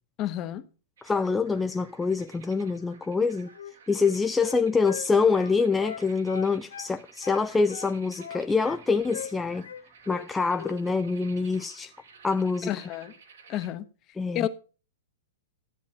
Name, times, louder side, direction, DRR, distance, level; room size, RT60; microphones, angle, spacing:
voice 1, 0.2-0.7 12.6-13.1 13.5-13.9 14.3-14.5, left 12 dB, 35° left, 1.0 m, -30 dB
voice 2, 1.0-3.5 3.9-9.7 10.1-11.9 12.2-12.7 14.2-14.5, left 4 dB, 10° left, 0.4 m, -25 dB
sound 1, 1.0-13.7, right 6 dB, 75° right, 2.9 m, -53 dB
Wind instrument woodwind instrument, 3.5-6.9 7.2-8.8 9.1-9.3 9.6-10.3 10.5-10.8, left 8 dB, 80° left, 0.7 m, -40 dB
13.0 x 8.3 x 4.2 m
hypercardioid pair, 120°, 0 cm